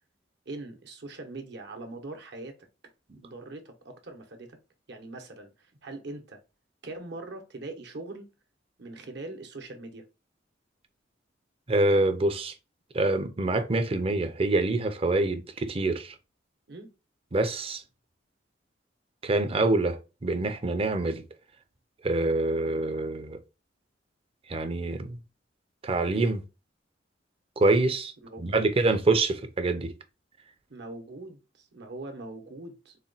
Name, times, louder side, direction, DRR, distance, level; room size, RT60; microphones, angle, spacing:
voice 1, 0.5-2.7 3.2-4.6 4.9-6.4 6.8-8.3 8.8-10.1 16.7-16.9 28.2-28.7 30.7-33.0, right 2 dB, 65° right, 0.9 m, -42 dB
voice 2, 11.7-12.5 12.9-16.1 17.3-17.8 19.2-21.2 22.0-23.4 24.5-25.2 25.8-26.4 27.6-28.1 28.4-29.9, right 2 dB, 30° right, 0.5 m, -26 dB
4.1 x 2.2 x 3.9 m
head